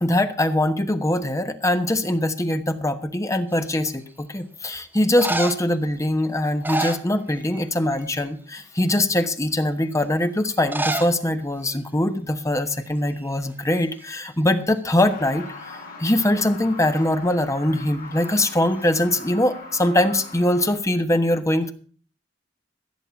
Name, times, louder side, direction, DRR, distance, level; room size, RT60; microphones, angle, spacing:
voice 1, 0.0-15.5 16.0-21.7, left 1 dB, 15° left, 8 dB, 1.1 m, -22 dB
sound 1, 3.5-4.0 5.0-5.8 6.4-7.7 7.9-8.3 8.9-9.0 10.6-11.1 11.4-11.5 11.7-11.8 12.6-12.8 13.1-14.3 18.2-18.9, right 2 dB, 10° right, 1.2 m, -30 dB
Truck, 15.0-20.8, left 3 dB, 50° left, 3.6 m, -41 dB
16.0 x 7.0 x 7.0 m, 0.42 s
head